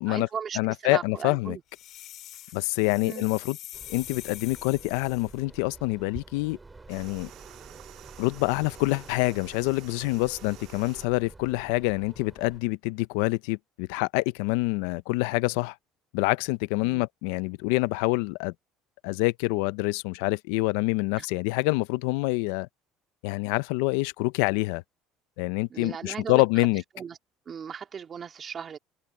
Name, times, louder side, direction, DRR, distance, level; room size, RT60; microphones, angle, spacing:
voice 1, 0.0-1.6 3.0-3.3 16.8-17.0 21.2-21.3 25.7-26.7 26.9-27.2 27.5-28.8, right 7 dB, 35° right, 2.8 m, -37 dB
voice 2, 0.6-1.6 2.5-3.6 3.9-6.6 6.9-7.3 8.2-15.7 16.1-18.5 19.0-22.7 23.2-24.8 25.4-26.8, left 23 dB, 90° left, 0.5 m, -26 dB
sound 1, 1.7-5.4, left 13 dB, 60° left, 3.0 m, -44 dB
sound 2, 3.7-12.6, right 3 dB, 15° right, 2.7 m, -48 dB
sound 3, 6.9-11.1, right 15 dB, 65° right, 2.3 m, -50 dB
cardioid pair, 115°, 0 cm